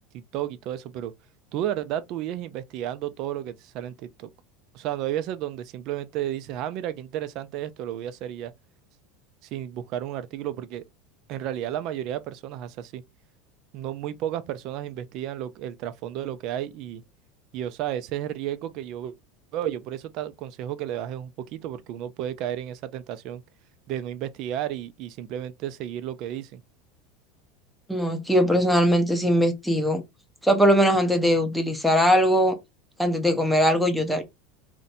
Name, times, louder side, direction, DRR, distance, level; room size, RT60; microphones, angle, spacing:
voice 1, 0.1-1.1 1.5-4.3 4.7-8.5 9.5-10.8 11.3-13.0 13.7-17.0 17.5-19.1 19.5-23.4 23.9-26.6, right 11 dB, 50° right, 0.4 m, -32 dB
voice 2, 27.9-30.0 30.4-32.6 33.0-34.2, equal, ahead, 0.6 m, -20 dB
2.6 x 2.1 x 3.9 m
supercardioid pair, 140°, 0 cm